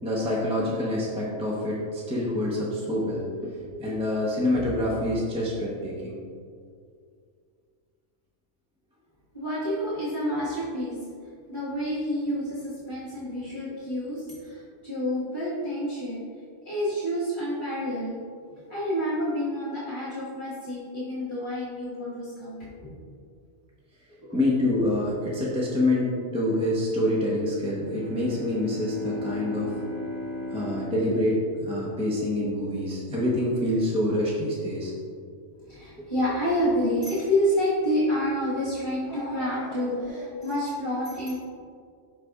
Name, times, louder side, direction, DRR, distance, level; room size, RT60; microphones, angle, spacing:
voice 1, 0.0-6.2 24.3-29.7 30.5-34.9 36.0-36.1, left 1 dB, 5° right, -5 dB, 0.9 m, -26 dB
voice 2, 9.3-11.0 11.5-16.3 16.6-18.2 18.7-22.7 24.2-24.3 35.5-41.4, equal, 25° left, -10 dB, 1.5 m, -28 dB
Bowed string instrument, 27.7-32.6, left 2 dB, 40° right, 0.9 m, -36 dB
12.0 x 4.1 x 2.4 m, 2.2 s
omnidirectional pair, 1.3 m